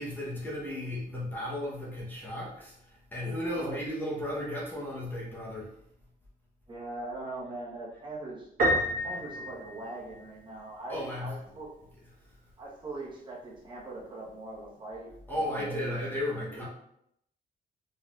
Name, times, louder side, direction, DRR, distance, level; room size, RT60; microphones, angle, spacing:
voice 1, 0.0-5.7 10.9-11.4 12.2-12.3 15.3-16.6, left 1 dB, 10° left, -6 dB, 0.9 m, -35 dB
voice 2, 6.7-8.5 9.0-11.7 12.6-16.6, right 2 dB, 30° right, -5 dB, 1.2 m, -41 dB
Piano, 8.6-10.4, equal, 70° right, 1.3 m, -29 dB
4.2 x 3.9 x 2.4 m, 0.74 s
wide cardioid pair, 170°, 16 cm